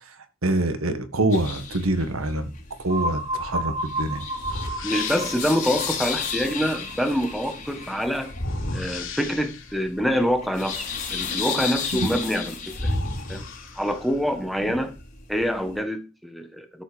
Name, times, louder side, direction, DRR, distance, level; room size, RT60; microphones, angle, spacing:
voice 1, 0.4-2.5 2.8-4.2 11.9-12.1, right 1 dB, 75° right, 1.7 m, -25 dB
sound 1, 1.3-15.8, left 6 dB, 35° left, 3.8 m, -34 dB
sound 2, 2.9-8.6, right 1 dB, 20° right, 1.8 m, -33 dB
sound 3, 3.4-3.6 4.4-5.6 8.3-9.9 12.2-12.3 12.7-14.3, left 1 dB, 60° left, 3.3 m, -32 dB
voice 2, 4.8-8.3 8.7-13.0 13.3-13.4 13.8-14.9 15.3-16.8, equal, ahead, 1.6 m, -26 dB
13.0 x 5.6 x 7.0 m
head